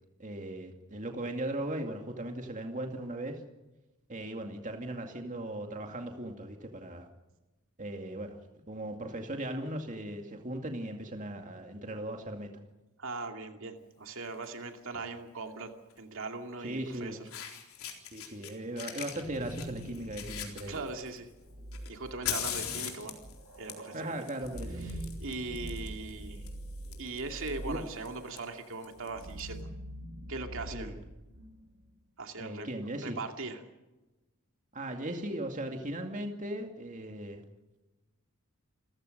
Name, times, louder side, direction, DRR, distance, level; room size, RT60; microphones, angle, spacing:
voice 1, 0.2-3.4 4.1-7.1 7.8-8.4 8.7-12.5 16.6-17.2 18.1-20.8 23.9-24.8 27.7-27.8 30.7-30.9 32.4-33.2 34.7-37.4, right 1 dB, 35° right, 4 dB, 2.2 m, -38 dB
voice 2, 13.0-15.7 16.0-17.2 20.7-21.3 21.9-23.2 23.6-24.3 24.8-26.4 27.0-29.7 30.3-30.9 32.2-33.6, right 3 dB, 60° right, 4 dB, 2.5 m, -40 dB
Fire, 14.2-14.5 15.9-16.0 16.9-17.0 17.3-18.5 18.8-21.2 21.7-29.4, left 9 dB, 70° left, 3.9 m, -41 dB
sound 1, 19.2-31.8, right 1 dB, 80° right, 5.5 m, -44 dB
28.5 x 15.5 x 6.6 m, 1.1 s
head